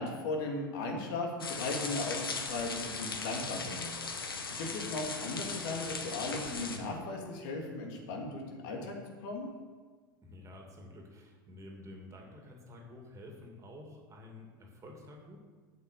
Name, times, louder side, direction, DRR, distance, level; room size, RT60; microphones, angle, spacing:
voice 1, 0.0-3.9 4.6-8.9 9.2-9.5, left 2 dB, 60° left, 1 dB, 2.4 m, -37 dB
sound 1, 1.4-6.8, left 4 dB, 90° left, 1.2 m, -38 dB
voice 2, 10.2-15.4, left 1 dB, 25° right, 1 dB, 2.5 m, -50 dB
8.4 x 7.8 x 6.7 m, 1.4 s
hypercardioid pair, 90°, 12 cm